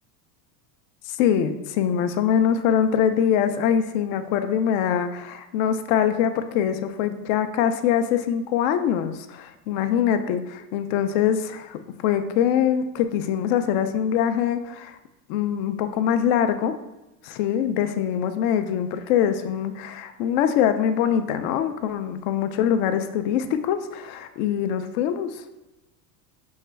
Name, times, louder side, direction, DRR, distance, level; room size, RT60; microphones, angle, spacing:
voice 1, 1.1-15.0 15.3-16.7 17.2-25.4, left 9 dB, 65° left, 9 dB, 0.5 m, -23 dB
6.3 x 2.2 x 3.3 m, 0.97 s
cardioid pair, 150°, 46 cm